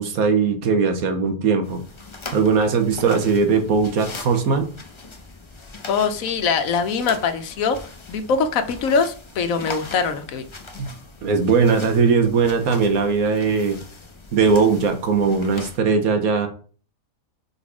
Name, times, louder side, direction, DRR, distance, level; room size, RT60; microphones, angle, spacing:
voice 1, 0.0-1.8 2.3-4.7 10.8-10.9 11.2-13.8 14.3-16.5, right 5 dB, 80° right, 1.5 m, -19 dB
sound 1, 1.6-15.8, left 3 dB, 25° left, 0.7 m, -40 dB
voice 2, 5.9-7.8 8.1-10.4, left 5 dB, 70° left, 1.2 m, -22 dB
5.2 x 4.1 x 4.8 m
omnidirectional pair, 1.5 m